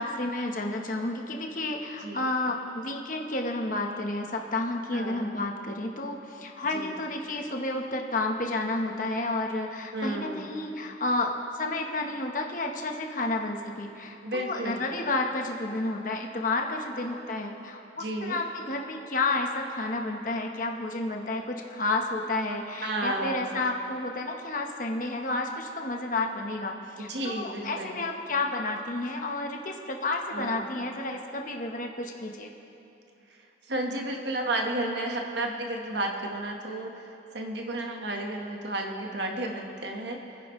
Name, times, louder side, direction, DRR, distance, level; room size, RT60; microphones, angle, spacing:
voice 1, 0.0-32.5, left 2 dB, 45° left, 2 dB, 1.1 m, -31 dB
voice 2, 4.9-5.3 6.7-7.0 9.9-10.5 14.2-14.8 18.0-18.4 22.8-23.5 27.0-28.0 30.3-30.6 33.7-37.1 37.3-40.2, right 1 dB, 65° right, 2 dB, 1.4 m, -32 dB
27.5 x 10.0 x 3.2 m, 2.9 s
head